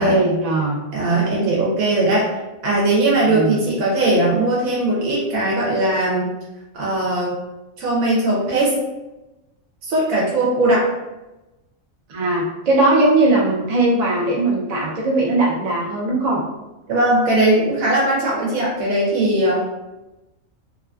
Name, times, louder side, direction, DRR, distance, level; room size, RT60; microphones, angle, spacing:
voice 1, 0.0-0.8 3.3-3.6 12.1-16.4, right 2 dB, 55° right, -3 dB, 0.4 m, -19 dB
voice 2, 0.9-2.3 2.6-6.3 6.7-7.4 7.8-8.7 9.8-10.9 16.9-19.6, right 2 dB, 85° right, -4 dB, 1.1 m, -19 dB
2.9 x 2.4 x 2.2 m, 1.0 s
omnidirectional pair, 1.4 m